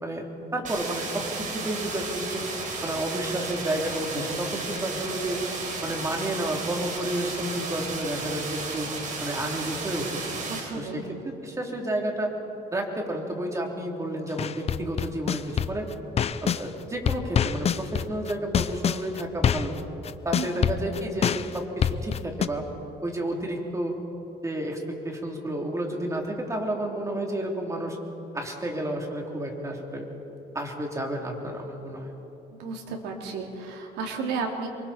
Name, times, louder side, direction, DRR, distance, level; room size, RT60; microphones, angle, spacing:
voice 1, 0.5-2.5 2.8-5.4 5.8-8.9 9.2-10.2 10.8-12.3 12.7-15.9 16.4-19.8 20.2-22.6 23.0-23.9 24.4-28.0 28.3-30.0 30.5-32.1, right 1 dB, 20° right, 0 dB, 3.4 m, -31 dB
sound 1, 0.6-10.6, right 4 dB, 50° right, 4.5 m, -34 dB
voice 2, 10.5-11.0 20.3-20.7 32.6-34.7, right 4 dB, 90° right, 1 dB, 2.9 m, -33 dB
sound 2, 14.4-16.6 17.1-22.5, left 8 dB, 40° left, 0.7 m, -25 dB
28.0 x 24.0 x 4.4 m, 3.0 s
cardioid pair, 110°, 17 cm